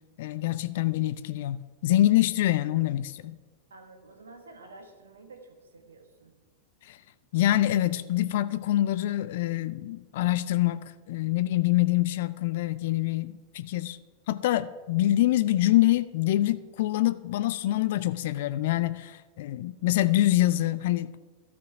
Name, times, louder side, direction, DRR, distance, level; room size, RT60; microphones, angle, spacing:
voice 1, 0.2-3.4 6.8-7.0 7.3-14.0 14.3-21.2, left 14 dB, 55° left, 14 dB, 0.3 m, -25 dB
voice 2, 3.7-6.3, right 2 dB, 70° right, 5 dB, 1.4 m, -50 dB
13.0 x 5.9 x 4.8 m, 1.3 s
figure-of-eight pair, 90°, 0 cm